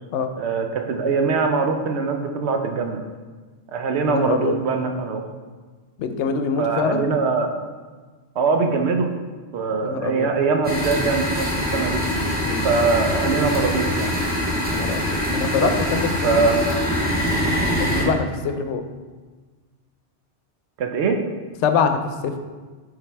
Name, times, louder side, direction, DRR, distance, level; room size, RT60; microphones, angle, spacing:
voice 1, 0.4-3.0 3.7-5.2 6.6-7.5 8.4-9.1 9.5-12.0 12.6-14.1 15.6-15.7 16.2-16.6 17.9-18.1 20.8-21.2, right 4 dB, 75° right, 5 dB, 0.9 m, -22 dB
voice 2, 4.1-4.5 6.0-7.1 9.8-10.3 12.4-12.6 14.7-16.5 17.8-18.8 21.6-22.4, left 6 dB, 90° left, 7 dB, 0.9 m, -24 dB
sound 1, 10.6-18.0, left 1 dB, 10° right, 1.1 m, -23 dB
7.2 x 4.0 x 3.4 m, 1.4 s
omnidirectional pair, 1.1 m